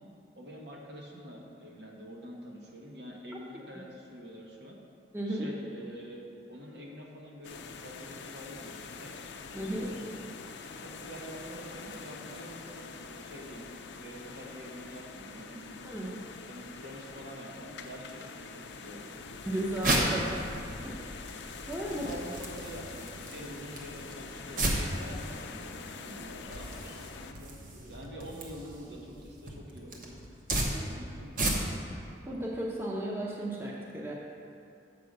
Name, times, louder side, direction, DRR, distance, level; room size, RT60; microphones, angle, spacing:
voice 1, 0.3-4.8 5.2-9.1 9.6-10.0 10.8-13.7 14.0-15.7 16.4-19.2 19.6-20.6 21.9-30.2 30.7-31.4, equal, 70° right, -1 dB, 1.2 m, -46 dB
voice 2, 5.1-5.5 9.5-9.9 15.8-16.2 19.4-20.4 20.8-20.9 21.7-22.1 30.7-30.9 32.3-34.1, right 1 dB, 10° right, -3 dB, 0.7 m, -34 dB
sound 1, 7.4-27.3, left 4 dB, 70° left, 0.5 m, -45 dB
sound 2, 19.2-31.9, right 1 dB, 45° right, 0.9 m, -35 dB
6.8 x 4.9 x 6.6 m, 2.6 s
head